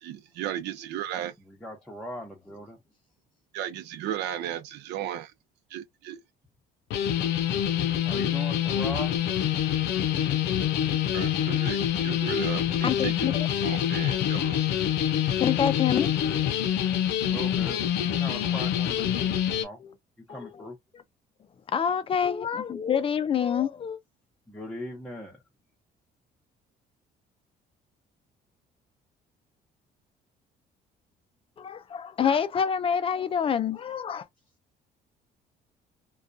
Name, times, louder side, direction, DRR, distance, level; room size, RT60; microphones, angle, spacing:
voice 1, 0.0-1.3 3.5-5.3 5.7-6.2 11.1-13.1 13.6-14.7, right 11 dB, 80° right, 0.6 m, -35 dB
voice 2, 1.5-2.8 8.0-9.2 17.2-19.8 20.3-20.8 24.5-25.4, left 1 dB, 5° left, 0.8 m, -39 dB
sound 1, 6.9-19.6, left 10 dB, 80° left, 0.6 m, -26 dB
voice 3, 12.8-13.5 15.4-16.5 19.8-19.9 20.3-20.7 21.7-24.0 31.6-34.3, left 8 dB, 35° left, 0.4 m, -27 dB
2.3 x 2.2 x 2.5 m
cardioid pair, 110°, 17 cm